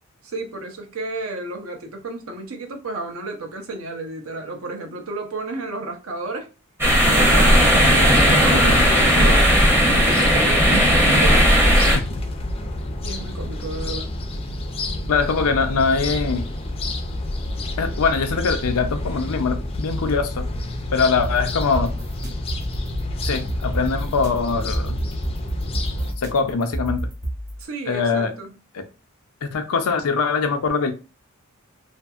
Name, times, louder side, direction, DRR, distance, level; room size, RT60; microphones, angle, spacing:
voice 1, 0.3-6.5 7.0-11.6 13.0-14.2 27.6-28.5, right 2 dB, 70° right, 0.7 m, -32 dB
sound 1, 6.8-12.0, equal, 10° right, 0.6 m, -16 dB
sound 2, 8.1-26.1, left 1 dB, 25° left, 0.4 m, -29 dB
voice 2, 8.5-8.9 11.9-12.2 15.1-16.5 17.8-20.5 20.9-21.9 23.2-25.0 26.2-27.1 27.9-28.3 28.7-28.8 29.4-30.9, left 5 dB, 80° left, 0.5 m, -22 dB
sound 3, 21.1-27.6, right 1 dB, 35° right, 1.1 m, -30 dB
2.7 x 2.6 x 2.3 m
head